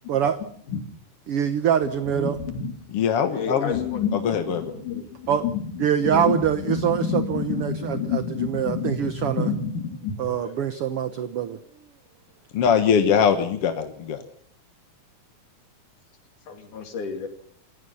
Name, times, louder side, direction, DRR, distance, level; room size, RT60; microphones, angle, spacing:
voice 1, 1.3-2.4 5.3-5.4 5.8-9.5 10.2-11.6, right 9 dB, 60° right, 11 dB, 1.7 m, -24 dB
voice 2, 2.1-2.7 3.3-10.6 16.5-17.3, left 6 dB, 80° left, 5 dB, 4.4 m, -29 dB
voice 3, 2.9-3.8 4.2-4.6 12.5-14.2, left 7 dB, 55° left, 7 dB, 2.0 m, -21 dB
29.0 x 16.0 x 5.6 m, 0.62 s
omnidirectional pair, 3.5 m